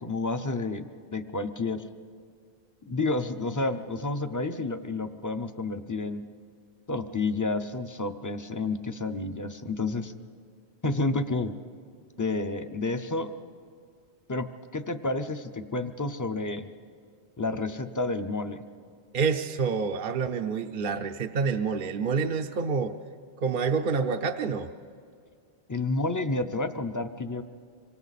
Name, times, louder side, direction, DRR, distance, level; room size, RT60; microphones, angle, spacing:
voice 1, 0.0-0.8 1.1-1.8 2.9-6.2 6.9-10.1 10.8-11.5 12.2-13.3 14.3-14.5 14.7-16.7 17.4-18.6 25.7-27.4, left 3 dB, 20° left, 9 dB, 0.6 m, -30 dB
voice 2, 19.1-22.9 23.4-24.7, right 5 dB, 55° right, 5 dB, 0.7 m, -27 dB
26.5 x 24.0 x 4.1 m, 2.3 s
omnidirectional pair, 1.1 m